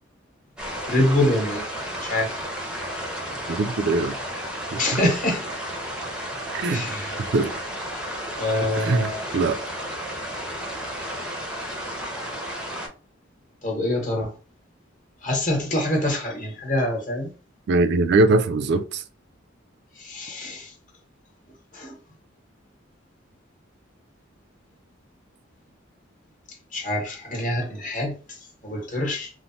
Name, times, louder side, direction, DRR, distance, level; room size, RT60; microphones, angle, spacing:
sound 1, 0.6-12.9, equal, 5° right, 0.5 m, -33 dB
voice 1, 0.9-1.7 2.0-2.3 4.8-5.4 6.7-7.1 8.4-9.3 13.6-14.3 15.2-17.3 20.0-20.7 21.7-21.9 26.7-28.2 28.6-29.3, left 1 dB, 40° left, 0.9 m, -25 dB
voice 2, 3.5-4.2 4.7-4.8 6.5-6.8 7.2-7.5 8.8-9.6 17.7-19.0, right 2 dB, 60° right, 0.3 m, -21 dB
3.1 x 2.0 x 2.6 m
head